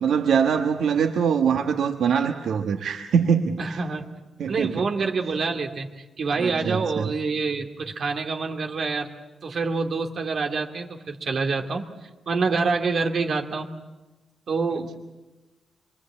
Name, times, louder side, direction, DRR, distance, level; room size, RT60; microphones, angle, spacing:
voice 1, 0.0-3.8 4.4-4.9 6.4-7.1, right 7 dB, 80° right, 5 dB, 1.2 m, -23 dB
voice 2, 3.6-4.1 4.5-9.1 9.4-11.9 12.3-13.7 14.5-14.9, right 4 dB, 50° right, 2 dB, 2.3 m, -26 dB
27.0 x 23.0 x 8.6 m, 1.1 s
wide cardioid pair, 150°, 0 cm